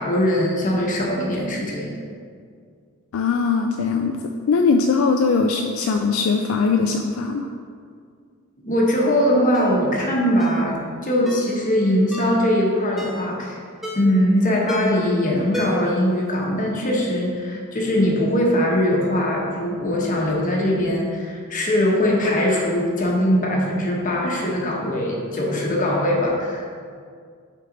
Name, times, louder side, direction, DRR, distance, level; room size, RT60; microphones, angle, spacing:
voice 1, 0.0-1.9 8.6-10.8 11.0-13.6 13.9-26.6, left 1 dB, 40° left, -2 dB, 1.1 m, -21 dB
voice 2, 3.1-4.2 4.5-7.5, left 4 dB, 65° left, 4 dB, 0.3 m, -20 dB
Ringtone, 9.5-9.8 10.4-10.6 11.3-11.5 12.1-12.4 13.0-13.3 13.8-14.2 14.7-15.1 15.5-16.0 16.3-16.4, equal, ahead, 0.6 m, -31 dB
5.7 x 4.6 x 3.9 m, 2.1 s
head